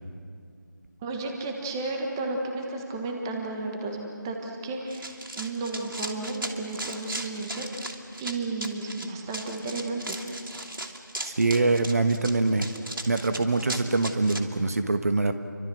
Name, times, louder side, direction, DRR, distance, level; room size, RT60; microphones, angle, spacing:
voice 1, 1.0-7.9 8.2-10.3, right 2 dB, 10° right, 1 dB, 1.4 m, -33 dB
Run, 4.9-14.4, right 1 dB, 85° right, 2.8 m, -37 dB
voice 2, 11.2-12.7 13.1-15.3, right 3 dB, 45° right, 8 dB, 1.4 m, -24 dB
30.0 x 25.0 x 6.3 m, 2.3 s
figure-of-eight pair, 165°, 11 cm